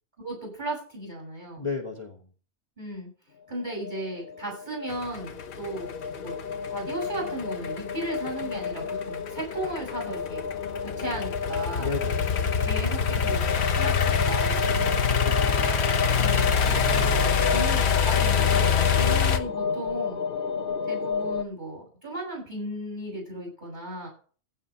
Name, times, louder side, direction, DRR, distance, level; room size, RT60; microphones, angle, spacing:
voice 1, 0.2-1.7 2.8-3.1 3.5-5.9 6.2-6.4 6.7-10.4 10.8-11.9 12.6-13.4 13.7-15.4 16.2-20.2 20.8-24.1, right 1 dB, 40° right, 0 dB, 7.3 m, -36 dB
voice 2, 1.6-2.3 11.8-12.3 15.2-15.6 18.9-19.2, left 4 dB, 25° left, 2 dB, 1.3 m, -34 dB
sound 1, 3.5-21.4, left 5 dB, 55° left, 0.9 m, -31 dB
sound 2, 4.9-19.4, left 6 dB, 70° left, 1.3 m, -25 dB
15.0 x 6.3 x 5.6 m, 0.41 s
omnidirectional pair, 1.2 m